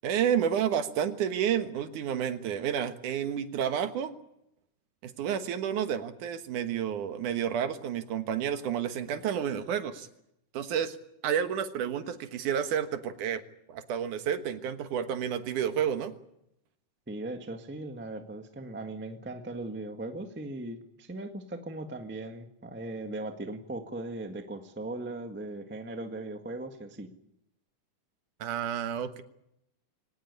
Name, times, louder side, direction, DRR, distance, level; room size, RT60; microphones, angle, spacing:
voice 1, 0.0-4.1 5.0-10.1 10.5-11.0 11.2-13.4 13.7-16.1 28.4-29.2, right 8 dB, 70° right, 9 dB, 2.8 m, -30 dB
voice 2, 17.1-27.1, right 2 dB, 15° right, 6 dB, 0.3 m, -38 dB
23.5 x 18.0 x 9.7 m, 0.81 s
omnidirectional pair, 3.7 m